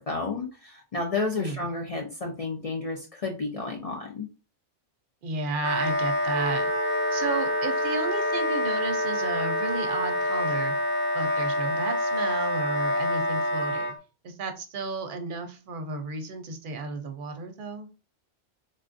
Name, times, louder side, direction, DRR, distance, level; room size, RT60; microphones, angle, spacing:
voice 1, 0.0-4.3, left 3 dB, 55° left, 1 dB, 0.4 m, -31 dB
voice 2, 5.2-6.7 7.1-10.7 11.1-13.9 14.2-17.9, right 3 dB, 55° right, 6 dB, 0.7 m, -33 dB
Wind instrument woodwind instrument, 5.6-13.9, left 1 dB, 10° left, 0.6 m, -27 dB
Wind instrument woodwind instrument 2, 6.3-10.7, equal, 85° left, 1.2 m, -36 dB
3.6 x 2.3 x 2.5 m, 0.32 s
omnidirectional pair, 1.2 m